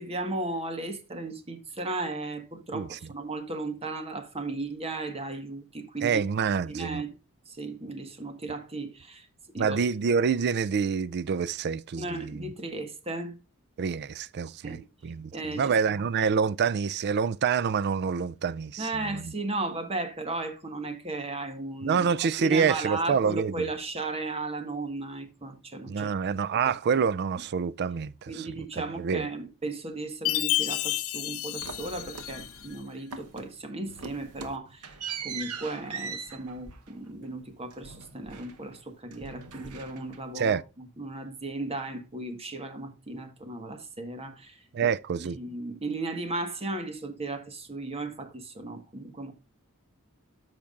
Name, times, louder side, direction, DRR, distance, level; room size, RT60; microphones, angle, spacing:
voice 1, 0.0-6.2 6.7-7.1 7.5-9.3 9.5-9.8 12.0-13.4 14.6-14.8 15.3-15.7 18.8-22.1 22.4-26.1 26.6-27.0 28.3-35.0 35.2-44.9 45.2-49.3, right 2 dB, 25° right, 1.4 m, -35 dB
voice 2, 6.0-7.0 9.6-12.5 13.8-19.3 21.8-23.7 25.9-28.5 28.8-29.3 40.4-40.6 44.7-45.4, right 6 dB, 50° right, 0.4 m, -27 dB
Chime, 30.3-32.7, left 17 dB, 65° left, 0.5 m, -30 dB
sound 1, 31.6-32.8 33.1-33.6 33.9-38.8 39.1-40.4, right 5 dB, 85° right, 1.1 m, -41 dB
13.5 x 5.9 x 2.4 m
head